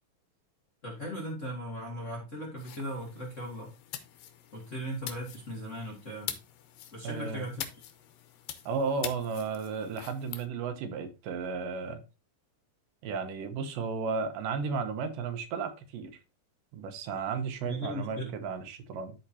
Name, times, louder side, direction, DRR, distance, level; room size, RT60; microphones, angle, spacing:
voice 1, 0.8-3.7 4.5-6.3 6.9-7.6 17.6-18.3, equal, 30° left, 1.5 m, -38 dB
sound 1, 2.6-10.5, left 11 dB, 90° left, 2.5 m, -44 dB
voice 2, 7.0-7.5 8.7-12.0 13.0-16.2 16.7-19.1, right 5 dB, 85° right, 2.6 m, -34 dB
12.5 x 4.4 x 2.8 m
omnidirectional pair, 3.9 m